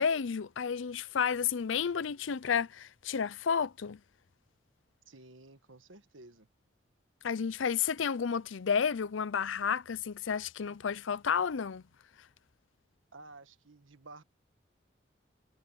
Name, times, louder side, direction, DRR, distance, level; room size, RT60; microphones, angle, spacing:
voice 1, 0.0-4.0 7.2-11.8, left 6 dB, 80° left, 0.5 m, -31 dB
voice 2, 5.1-6.5 13.1-14.2, right 2 dB, 90° right, 1.5 m, -53 dB
head